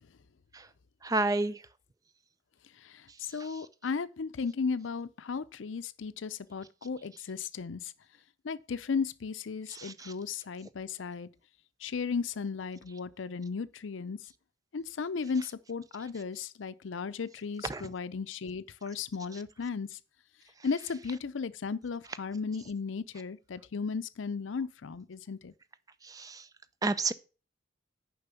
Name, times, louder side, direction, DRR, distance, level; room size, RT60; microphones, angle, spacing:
voice 1, 1.0-1.6 9.7-10.1 17.7-17.8 26.1-26.4 26.8-27.1, right 2 dB, 20° right, 0.5 m, -30 dB
voice 2, 3.3-7.9 8.4-11.3 11.8-14.2 14.7-19.9 20.6-25.5, left 5 dB, 80° left, 0.5 m, -35 dB
6.8 x 5.3 x 6.9 m
head